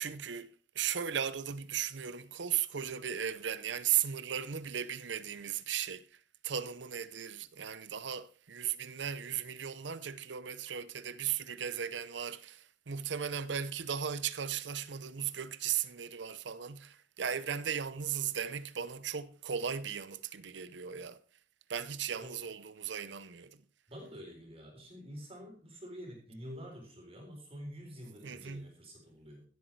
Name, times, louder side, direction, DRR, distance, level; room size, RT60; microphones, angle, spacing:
voice 1, 0.0-21.2 21.7-23.6 28.2-28.7, right 8 dB, 75° right, 0.7 m, -36 dB
voice 2, 23.9-29.4, equal, 30° right, 4.1 m, -47 dB
16.5 x 8.3 x 4.6 m
head